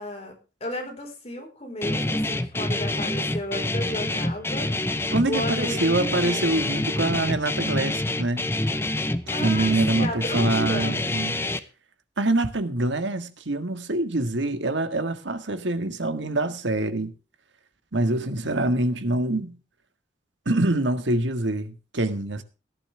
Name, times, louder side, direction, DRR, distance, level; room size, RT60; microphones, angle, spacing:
voice 1, 0.0-6.7 9.3-11.1, left 1 dB, 35° left, 4.5 m, -34 dB
Guitar, 1.8-11.6, left 2 dB, 15° left, 0.8 m, -27 dB
voice 2, 5.1-8.5 9.4-11.3 12.2-17.1 17.9-19.6 20.4-22.4, right 2 dB, 80° right, 1.7 m, -25 dB
17.5 x 11.5 x 3.4 m
head